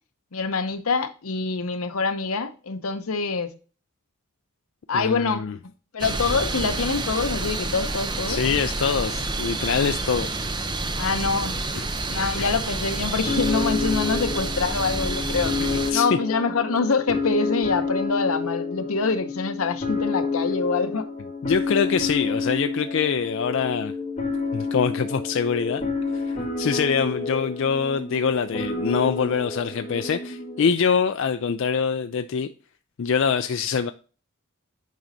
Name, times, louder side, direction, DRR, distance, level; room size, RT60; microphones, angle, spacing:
voice 1, 0.3-3.5 4.9-5.5 5.9-8.4 11.0-11.6 12.1-15.5 15.9-21.1, left 4 dB, 85° left, 0.8 m, -25 dB
voice 2, 4.9-5.5 8.3-10.4 11.7-11.9 12.4-12.5 15.6-16.1 21.4-23.9 24.5-25.9 26.1-32.5 33.0-33.9, left 6 dB, 60° left, 0.4 m, -24 dB
sound 1, 6.0-15.9, right 2 dB, 20° right, 0.6 m, -29 dB
sound 2, 13.3-30.7, left 4 dB, 25° left, 3.1 m, -29 dB
9.2 x 5.0 x 2.7 m
head